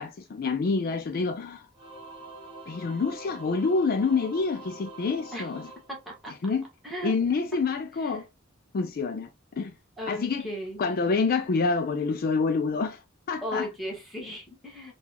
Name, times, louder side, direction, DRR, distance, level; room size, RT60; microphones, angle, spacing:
voice 1, 0.0-1.7 2.7-5.7 6.4-6.6 7.0-8.3 8.7-9.3 9.6-9.7 10.1-10.5 10.8-13.0 13.3-13.7, left 4 dB, 45° left, 0.4 m, -27 dB
Singing / Musical instrument, 1.7-6.6, right 2 dB, 25° right, 1.1 m, -45 dB
voice 2, 5.9-6.3 6.8-7.1 8.0-8.2 10.0-10.8 13.4-14.9, equal, ahead, 1.4 m, -36 dB
3.9 x 2.4 x 2.8 m
head